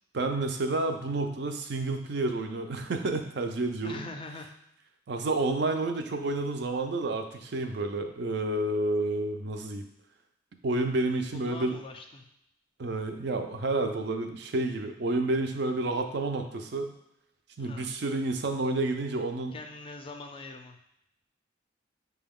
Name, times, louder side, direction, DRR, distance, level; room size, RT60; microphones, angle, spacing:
voice 1, 0.1-4.0 5.1-9.8 10.6-11.8 12.8-16.9 17.6-19.6, right 2 dB, 60° right, 6 dB, 0.5 m, -30 dB
voice 2, 3.8-4.5 11.3-12.3 17.6-17.9 19.5-20.8, left 3 dB, 30° left, 4 dB, 0.4 m, -43 dB
5.9 x 2.3 x 3.6 m, 0.83 s
head